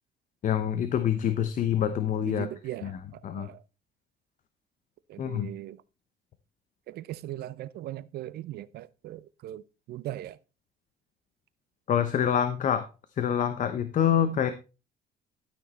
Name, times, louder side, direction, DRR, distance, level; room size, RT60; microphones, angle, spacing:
voice 1, 0.4-2.5 2.8-3.5 5.2-5.5 11.9-12.9 13.2-14.5, left 9 dB, 50° left, 1.0 m, -26 dB
voice 2, 2.3-3.0 3.3-3.6 5.1-5.8 6.9-9.6 9.9-10.4, right 14 dB, 70° right, 0.6 m, -39 dB
12.0 x 6.2 x 4.2 m
cardioid pair, 110°, 17 cm